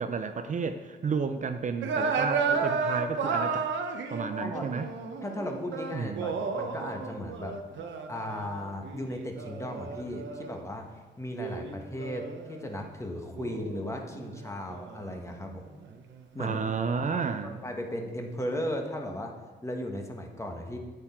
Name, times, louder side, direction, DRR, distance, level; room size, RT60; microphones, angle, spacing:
voice 1, 0.0-3.7 4.1-4.9 5.9-6.3 16.4-17.6, right 5 dB, 45° right, 8 dB, 0.6 m, -32 dB
sound 1, 1.8-10.6 11.3-12.9 13.3-16.3, right 5 dB, 80° right, 0.9 m, -33 dB
voice 2, 5.2-7.6 8.1-10.9 11.2-15.7 16.3-16.6 17.1-19.3 19.6-20.8, left 1 dB, 15° left, 3 dB, 1.4 m, -36 dB
8.7 x 7.9 x 4.4 m, 1.3 s
cardioid pair, 95°, 19 cm